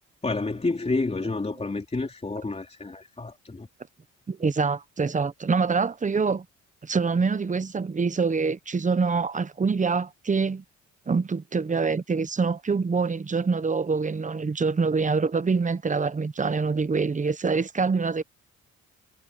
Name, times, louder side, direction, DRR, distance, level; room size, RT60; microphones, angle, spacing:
voice 1, 0.2-3.7, left 3 dB, 20° left, 3.2 m, -29 dB
voice 2, 4.3-6.4 6.8-10.6 11.1-18.2, right 4 dB, 25° right, 1.1 m, -25 dB
cardioid pair, 90°, 30 cm